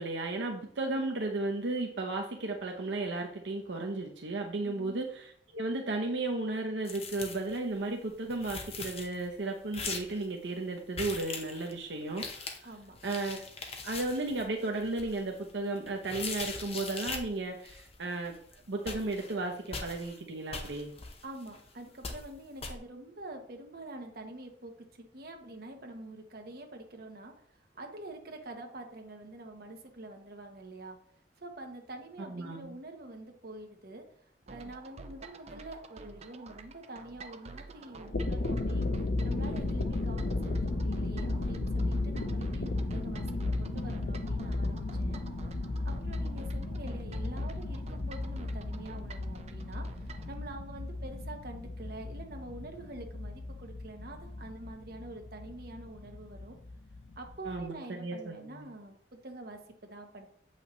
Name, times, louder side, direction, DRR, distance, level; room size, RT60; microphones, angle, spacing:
voice 1, 0.0-12.7 13.0-13.4 13.8-18.4 18.7-20.9 32.3-32.8 57.4-58.7, right 2 dB, 80° right, 1 dB, 0.8 m, -34 dB
voice 2, 4.6-5.0 12.6-13.0 21.2-31.0 31.4-34.0 34.5-38.9 39.2-43.3 43.5-45.2 45.8-56.6 57.2-60.3, right 2 dB, 55° right, 3 dB, 1.1 m, -46 dB
sound 1, 6.9-7.6 7.9-8.0 8.2-9.3 9.7-10.3 10.9-11.7 12.1-17.3 17.7-18.0 18.3-18.5 18.8-20.2 20.5-21.7 22.0-22.3 22.6-22.8, left 4 dB, 35° left, 0.9 m, -41 dB
sound 2, 34.5-50.3, right 3 dB, 35° right, 0.5 m, -50 dB
sound 3, 37.9-57.6, left 2 dB, 65° left, 0.8 m, -34 dB
7.9 x 5.6 x 3.1 m, 0.65 s
head